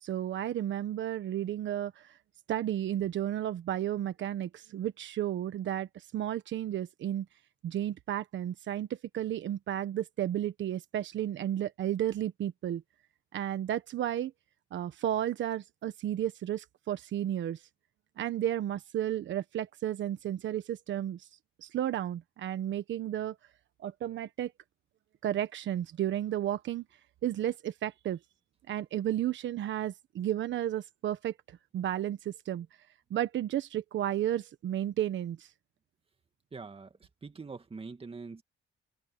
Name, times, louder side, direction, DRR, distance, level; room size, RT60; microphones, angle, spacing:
voice 1, 0.0-2.1 2.5-7.3 7.6-12.8 13.3-14.3 14.7-17.6 18.2-21.2 21.6-23.3 23.8-24.5 25.2-26.8 27.2-28.2 28.7-32.7 33.1-35.5, right 11 dB, 70° right, 1.3 m, -33 dB
voice 2, 36.5-36.9 37.2-38.4, right 4 dB, 30° right, 2.4 m, -43 dB
cardioid pair, 90°, 20 cm